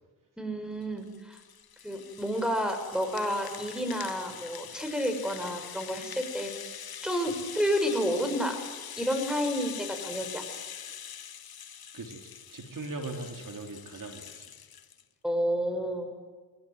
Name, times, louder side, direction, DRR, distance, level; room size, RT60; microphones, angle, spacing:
voice 1, 0.4-1.4 1.8-6.5 7.0-8.6 9.0-10.4 15.2-16.1, equal, ahead, 6 dB, 6.5 m, -30 dB
Rattle (instrument), 0.8-15.0, left 8 dB, 50° left, 1.6 m, -43 dB
voice 2, 11.9-14.5, right 2 dB, 45° right, 4 dB, 3.5 m, -40 dB
23.0 x 19.0 x 9.4 m, 1.4 s
cardioid pair, 70°, 45 cm